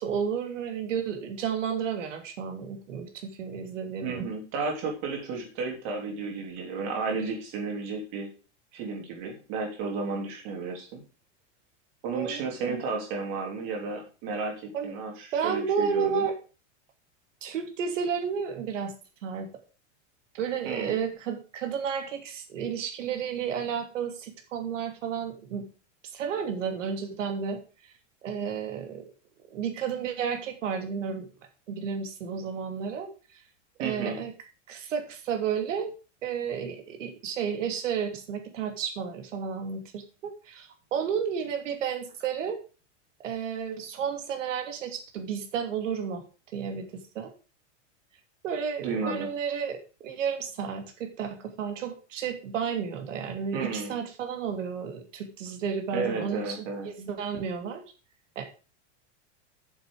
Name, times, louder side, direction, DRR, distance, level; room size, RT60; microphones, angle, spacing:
voice 1, 0.0-4.3 12.1-12.8 14.7-14.9 15.3-16.3 17.4-18.9 19.2-19.5 20.3-25.7 26.1-27.6 28.2-29.1 29.5-31.3 31.7-33.1 33.8-34.3 34.7-35.9 36.2-42.6 43.2-46.2 46.5-47.3 48.4-57.8 58.4-58.5, right 7 dB, 90° right, 5 dB, 2.8 m, -32 dB
voice 2, 4.0-8.3 8.7-11.0 12.0-16.2 20.6-20.9 33.8-34.2 48.8-49.3 53.5-54.0 55.9-56.9, right 4 dB, 35° right, 2 dB, 3.2 m, -33 dB
8.8 x 7.2 x 4.8 m, 0.34 s
supercardioid pair, 175°, 36 cm